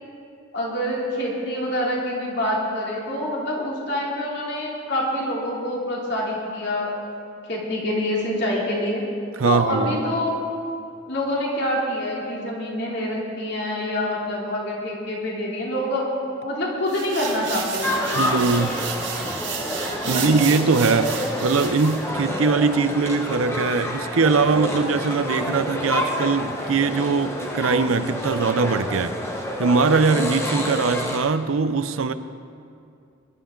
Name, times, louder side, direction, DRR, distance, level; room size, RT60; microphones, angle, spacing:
voice 1, 0.5-7.0 7.5-9.0 9.4-10.4 11.1-16.1 16.4-18.5 20.0-20.3, left 1 dB, 55° left, -4 dB, 3.1 m, -26 dB
voice 2, 9.4-10.0 18.1-18.8 20.1-29.1 29.6-32.1, right 4 dB, 85° right, 11 dB, 0.6 m, -21 dB
sound 1, 16.9-22.0, right 6 dB, 60° right, 2.0 m, -32 dB
sound 2, 17.8-31.2, left 1 dB, 15° left, 1.1 m, -28 dB
21.5 x 11.5 x 3.8 m, 2.4 s
head